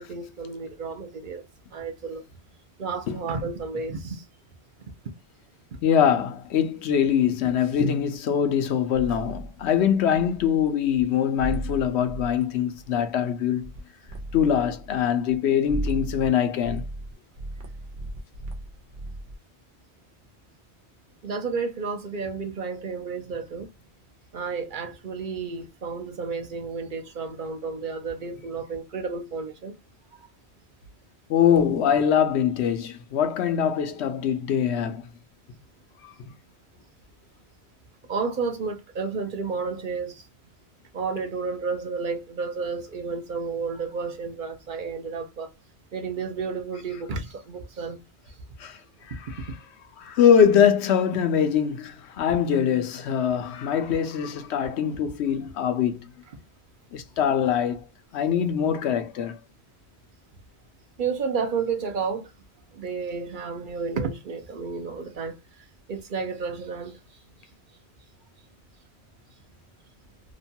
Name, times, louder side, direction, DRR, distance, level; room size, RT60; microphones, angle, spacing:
voice 1, 0.0-1.4 1.7-2.2 2.8-4.2 21.2-23.7 24.3-29.7 30.1-30.3 38.1-40.2 40.9-45.5 45.9-48.0 61.0-62.3 62.7-67.2, right 5 dB, 55° right, 0.7 m, -31 dB
voice 2, 5.8-13.7 14.3-16.8 31.3-35.1 36.0-36.1 48.6-48.8 49.1-49.5 50.0-56.1 56.9-57.9 58.1-59.4, left 8 dB, 80° left, 0.9 m, -23 dB
sound 1, 8.9-10.7 10.9-11.0 11.4-12.4 12.8-13.3 13.6-13.8 14.1-15.4 15.7-16.3 16.6-19.4, right 1 dB, 85° right, 1.1 m, -35 dB
2.9 x 2.2 x 2.7 m
omnidirectional pair, 1.1 m